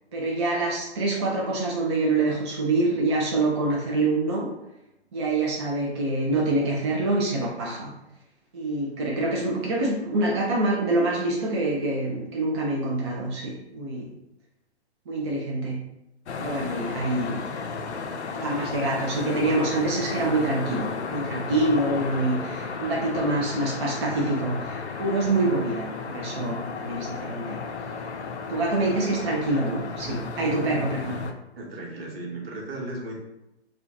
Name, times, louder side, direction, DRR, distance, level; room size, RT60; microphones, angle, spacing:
voice 1, 0.1-4.6 5.1-7.9 8.5-14.1 15.1-15.9 16.4-17.5 18.3-27.6 28.5-31.3, right 2 dB, 25° right, -4 dB, 0.4 m, -26 dB
sound 1, 16.3-31.3, left 4 dB, 80° left, 0.5 m, -34 dB
voice 2, 31.6-33.2, right 2 dB, 60° right, -1 dB, 1.1 m, -35 dB
4.3 x 2.3 x 2.6 m, 0.90 s
figure-of-eight pair, 130°, 34 cm